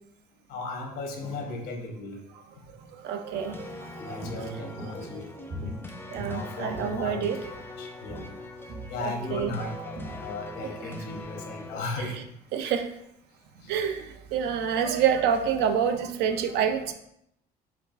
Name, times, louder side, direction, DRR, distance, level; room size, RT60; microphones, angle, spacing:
voice 1, 0.5-2.1 4.0-5.3 6.3-7.3 7.8-8.4 8.9-12.1, left 2 dB, 80° left, 1 dB, 0.9 m, -36 dB
voice 2, 3.0-4.5 4.8-4.9 6.1-7.4 9.0-10.9 12.0-12.2 12.5-12.9 13.7-16.9, right 8 dB, 80° right, 7 dB, 0.4 m, -28 dB
sound 1, 3.3-11.9, left 2 dB, 15° left, 0.3 m, -42 dB
Walk footsteps, 3.4-7.7 8.0-8.4 8.7-11.0 11.3-11.4, equal, 40° right, 0.7 m, -41 dB
4.5 x 2.3 x 2.3 m, 0.78 s
cardioid pair, 110°, 17 cm